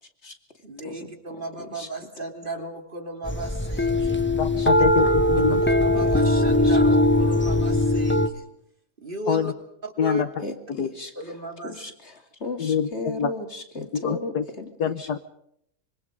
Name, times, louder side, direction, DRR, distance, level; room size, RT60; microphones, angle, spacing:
voice 1, 0.6-4.2 5.8-8.5 9.0-9.5 9.8-10.2 11.1-11.7, right 1 dB, 30° right, 4 dB, 3.2 m, -35 dB
voice 2, 1.6-1.9 4.6-4.7 5.9-6.2 6.6-6.8 10.4-11.1 11.6-14.7 15.0-15.1, left 2 dB, 40° left, 5 dB, 2.9 m, -35 dB
sound 1, 3.3-8.3, left 1 dB, 10° left, 0.9 m, -20 dB
voice 3, 4.4-5.6 9.3-9.5 10.0-10.3 10.8-10.9 12.6-13.3 14.0-14.4 14.8-15.2, left 7 dB, 75° left, 11 dB, 1.7 m, -25 dB
26.0 x 24.0 x 5.2 m, 0.72 s
omnidirectional pair, 1.7 m